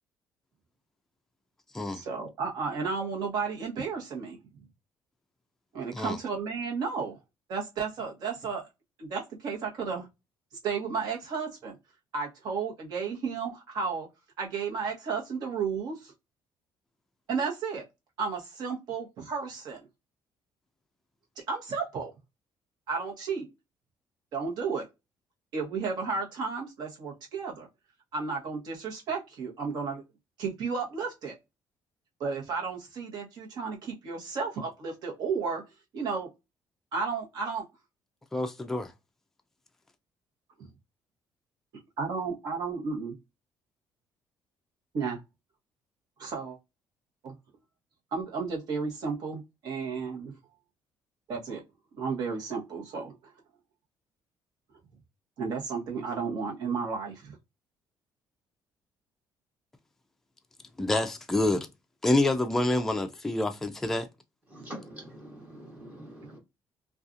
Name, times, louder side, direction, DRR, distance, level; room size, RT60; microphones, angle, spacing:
voice 1, 1.9-4.4 5.7-7.2 7.5-8.7 9.0-10.1 10.6-11.8 12.1-14.1 14.4-16.1 17.3-17.9 18.2-19.9 21.5-22.1 22.9-23.5 24.3-24.9 25.5-27.7 28.1-30.0 30.4-31.3 32.2-35.6 35.9-36.3 36.9-37.6 40.6-40.7 42.0-43.1 44.9-45.2 46.2-46.6 47.2-47.3 48.1-50.3 51.3-51.6 52.0-53.1 55.4-57.4, right 5 dB, 65° right, 1.0 m, -33 dB
voice 2, 38.3-38.9 60.8-61.7 62.0-64.1, left 2 dB, 5° left, 0.3 m, -27 dB
voice 3, 64.5-66.4, right 1 dB, 20° right, 0.9 m, -44 dB
2.7 x 2.3 x 2.4 m
cardioid pair, 140°, 8 cm